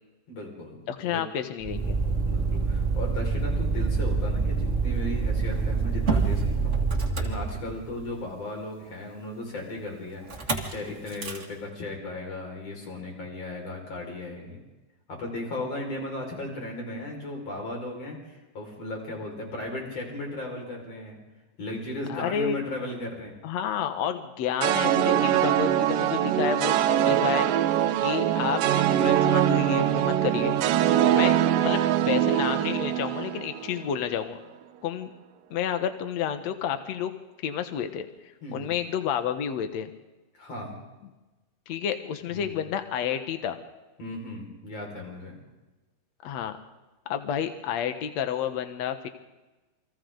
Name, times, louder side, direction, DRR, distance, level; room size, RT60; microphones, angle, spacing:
voice 1, 0.3-1.2 2.3-6.7 7.2-14.6 15.1-21.2 21.6-23.4 38.4-38.7 40.4-40.8 42.3-42.6 44.0-45.4, left 2 dB, 35° left, 0 dB, 6.3 m, -36 dB
voice 2, 0.9-2.0 22.1-22.6 23.4-27.5 28.0-30.6 30.8-34.4 34.8-35.1 35.5-37.1 37.4-38.1 38.5-39.9 41.7-43.6 46.2-46.6 47.1-49.1, left 8 dB, 80° left, 8 dB, 1.5 m, -30 dB
Motor vehicle (road), 1.6-8.0 10.3-10.7 11.1-11.4, right 4 dB, 25° right, 1.7 m, -26 dB
sound 1, 24.6-33.9, right 11 dB, 70° right, 2.2 m, -23 dB
29.0 x 25.0 x 3.9 m, 1.1 s
omnidirectional pair, 4.9 m